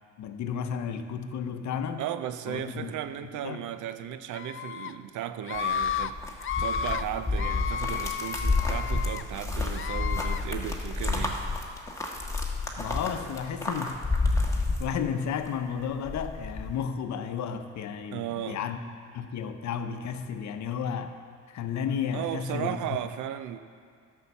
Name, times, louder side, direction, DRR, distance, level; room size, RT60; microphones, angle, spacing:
voice 1, 0.2-2.1 2.5-2.9 3.4-3.6 12.8-14.0 14.5-18.8 19.1-21.2 21.5-23.0, left 7 dB, 65° left, 8 dB, 0.8 m, -33 dB
voice 2, 2.0-11.5 18.1-18.6 22.1-23.6, right 11 dB, 80° right, 11 dB, 0.6 m, -35 dB
Screaming, 4.3-4.9 5.4-6.1 6.4-7.0 7.4-9.2 9.7-10.4, left 8 dB, 45° left, 0.4 m, -32 dB
sound 1, 5.5-15.5 15.8-16.7, left 3 dB, 10° left, 1.4 m, -30 dB
11.0 x 5.7 x 7.0 m, 2.2 s
cardioid pair, 90°, 30 cm